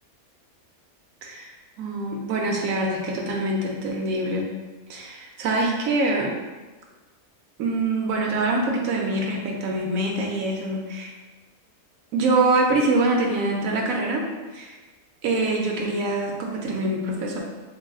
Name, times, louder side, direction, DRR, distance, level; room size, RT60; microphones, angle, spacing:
voice 1, 1.2-1.5 1.8-4.5 4.9-6.3 7.6-11.1 12.1-14.3 14.5-14.8 15.2-17.4, right 2 dB, 70° right, 0 dB, 0.9 m, -24 dB
3.7 x 3.3 x 2.3 m, 1.3 s
omnidirectional pair, 1.6 m